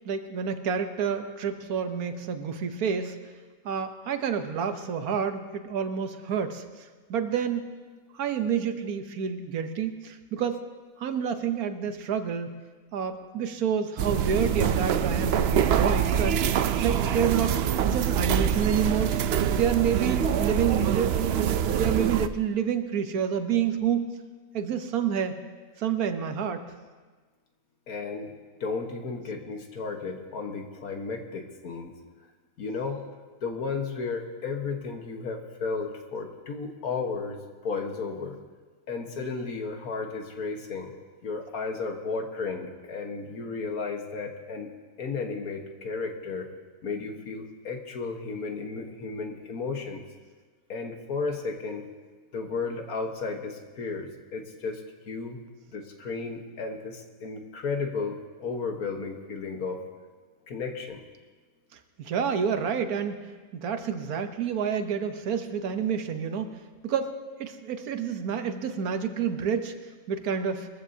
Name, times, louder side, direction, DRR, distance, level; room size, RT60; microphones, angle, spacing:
voice 1, 0.1-3.3 3.6-7.6 8.1-10.6 11.0-12.5 12.9-19.2 19.5-24.1 24.5-25.4 25.8-26.6 61.7-63.2 63.5-66.6 66.8-69.7 70.1-70.7, right 7 dB, 85° right, 8 dB, 1.4 m, -29 dB
sound 1, 14.0-22.3, right 8 dB, 65° right, 0.6 m, -25 dB
voice 2, 27.9-28.3 28.6-31.9 32.6-33.1 33.4-37.4 37.6-38.4 38.9-40.9 41.2-44.7 45.0-46.5 46.8-50.0 50.7-51.9 52.3-55.4 55.7-59.8 60.5-61.0, left 4 dB, 80° left, 4 dB, 1.8 m, -33 dB
21.5 x 14.5 x 2.8 m, 1.4 s
omnidirectional pair, 1.5 m